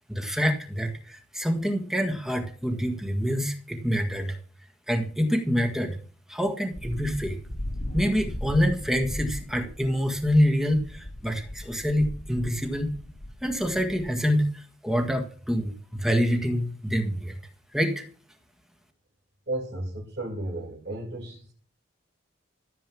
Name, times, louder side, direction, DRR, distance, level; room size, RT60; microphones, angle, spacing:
voice 1, 0.1-4.4 4.9-6.0 6.3-7.4 7.9-12.9 13.4-17.4 17.7-18.1, equal, ahead, 1.6 m, -26 dB
sound 1, 6.7-14.1, left 1 dB, 80° left, 2.0 m, -37 dB
voice 2, 19.5-21.5, right 1 dB, 50° right, 2.5 m, -33 dB
14.0 x 7.8 x 6.2 m
head